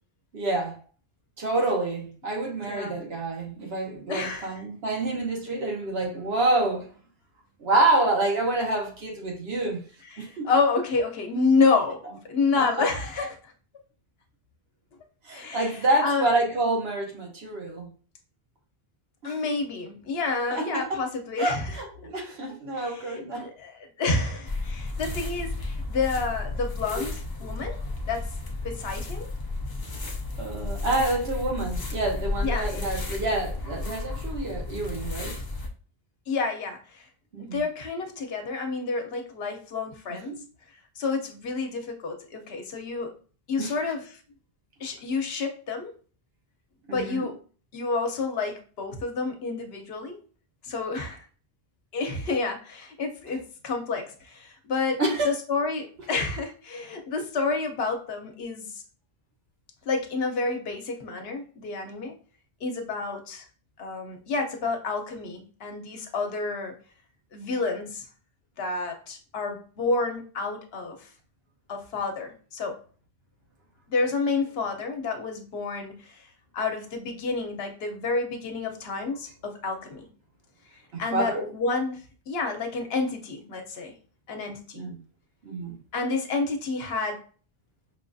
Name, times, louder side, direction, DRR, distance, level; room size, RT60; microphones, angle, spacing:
voice 1, 0.3-0.8 1.4-6.9 7.6-9.8 10.2-10.5 12.6-12.9 15.2-17.9 19.2-19.3 20.5-21.0 21.4-23.5 30.4-35.4 37.3-37.6 40.3-40.4 43.6-43.7 46.9-47.3 55.0-55.3 80.9-81.5 84.7-85.0 85.4-85.8, right 2 dB, 80° right, 1.2 m, -27 dB
voice 2, 2.7-3.0 4.1-4.6 10.0-13.5 15.3-16.3 19.2-21.8 22.7-27.8 28.1-28.3 28.6-29.3 32.4-32.8 36.3-37.1 37.4-40.4 41.0-43.1 43.5-44.2 44.8-45.9 46.9-47.3 47.7-50.2 50.6-51.2 51.9-58.7 59.9-62.1 62.6-63.5 63.8-66.8 67.3-68.1 68.6-71.1 71.7-72.8 73.9-80.1 80.7-83.9 84.3-84.8 85.9-87.2, left 4 dB, 75° left, 1.0 m, -29 dB
sound 1, 24.5-35.7, left 2 dB, 35° left, 0.4 m, -33 dB
5.6 x 2.3 x 2.6 m
omnidirectional pair, 1.0 m